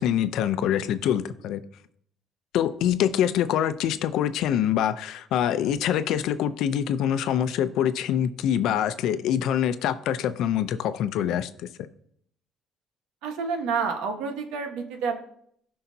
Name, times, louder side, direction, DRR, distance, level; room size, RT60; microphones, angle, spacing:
voice 1, 0.0-1.6 2.5-11.9, left 10 dB, 75° left, 11 dB, 0.6 m, -25 dB
voice 2, 13.2-15.2, right 5 dB, 90° right, 4 dB, 1.4 m, -29 dB
16.5 x 5.6 x 2.8 m, 0.67 s
cardioid pair, 125°, 0 cm